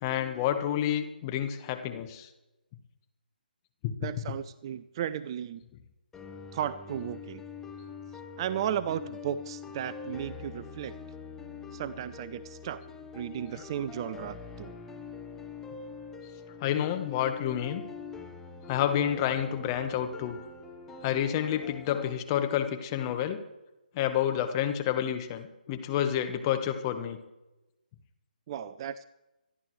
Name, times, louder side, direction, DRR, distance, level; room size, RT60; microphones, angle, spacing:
voice 1, 0.0-2.3 3.8-4.1 13.5-13.6 16.6-17.8 18.7-20.4 21.0-23.4 23.9-27.2, left 10 dB, 25° left, 7 dB, 1.4 m, -29 dB
voice 2, 4.0-5.6 6.5-7.4 8.4-10.9 11.7-12.8 13.1-14.7 28.5-29.1, right 10 dB, 30° right, 15 dB, 0.5 m, -35 dB
sound 1, 6.1-22.1, left 5 dB, 10° left, 1.0 m, -44 dB
25.5 x 11.0 x 3.2 m, 0.99 s
figure-of-eight pair, 145°, 5 cm